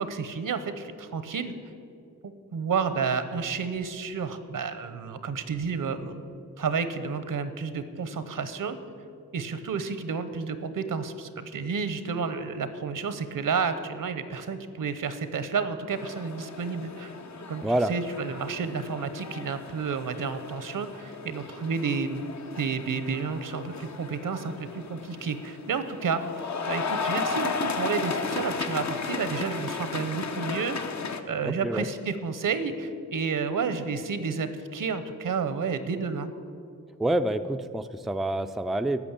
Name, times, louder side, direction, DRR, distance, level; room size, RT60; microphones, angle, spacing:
voice 1, 0.0-1.6 2.2-6.2 6.6-8.8 9.3-17.1 17.5-17.6 17.9-22.2 22.6-30.8 31.3-36.3, right 5 dB, 75° right, 11 dB, 0.9 m, -31 dB
sound 1, 15.9-31.2, left 4 dB, 55° left, 0.9 m, -35 dB
voice 2, 31.4-31.9 37.0-39.0, right 1 dB, ahead, 8 dB, 0.4 m, -27 dB
13.0 x 6.3 x 8.8 m, 2.4 s
wide cardioid pair, 85°, 33 cm